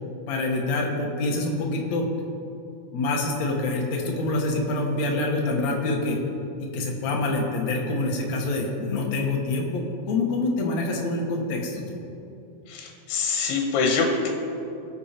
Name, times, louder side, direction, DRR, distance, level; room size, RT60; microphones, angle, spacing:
voice 1, 0.3-2.1 2.9-6.2 6.6-12.0, left 2 dB, 60° left, 0 dB, 2.1 m, -26 dB
voice 2, 12.7-14.3, left 4 dB, 80° left, 1 dB, 3.1 m, -24 dB
20.5 x 7.0 x 4.4 m, 2.8 s
omnidirectional pair, 4.7 m